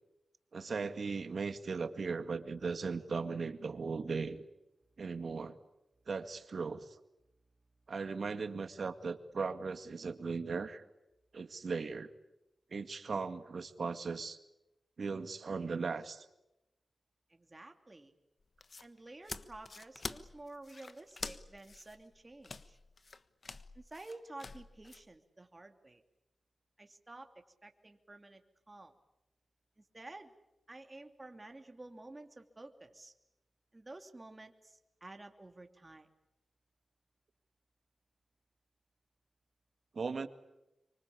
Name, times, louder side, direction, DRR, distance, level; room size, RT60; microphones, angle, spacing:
voice 1, 0.5-4.4 5.0-5.6 6.1-6.9 7.9-10.8 11.3-12.1 12.7-14.4 15.0-16.3 39.9-40.3, right 4 dB, 65° right, 10 dB, 1.9 m, -38 dB
voice 2, 17.3-18.1 18.8-22.8 23.7-26.0 26.8-27.3 27.6-28.4 28.7-28.9 29.8-30.3 30.7-33.1 33.7-36.1, right 2 dB, 25° right, 5 dB, 2.8 m, -51 dB
sound 1, 18.4-25.0, left 3 dB, 55° left, 1.3 m, -47 dB
25.0 x 25.0 x 8.6 m, 0.92 s
cardioid pair, 65°, 0 cm